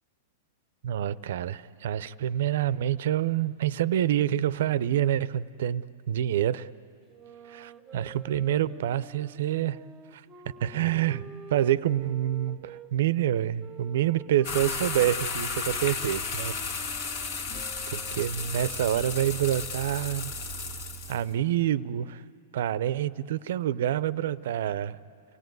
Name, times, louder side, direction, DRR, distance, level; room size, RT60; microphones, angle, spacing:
voice 1, 0.8-6.7 7.5-9.8 10.1-10.2 10.6-11.2 11.5-16.5 17.9-20.4 21.1-22.2 22.5-25.0, right 11 dB, 70° right, 18 dB, 0.6 m, -27 dB
sound 1, 7.1-12.9 13.6-19.1, right 5 dB, 15° right, 0.8 m, -48 dB
sound 2, 14.4-21.2, left 4 dB, 55° left, 1.8 m, -33 dB
29.0 x 17.5 x 9.4 m, 2.4 s
hypercardioid pair, 140°, 0 cm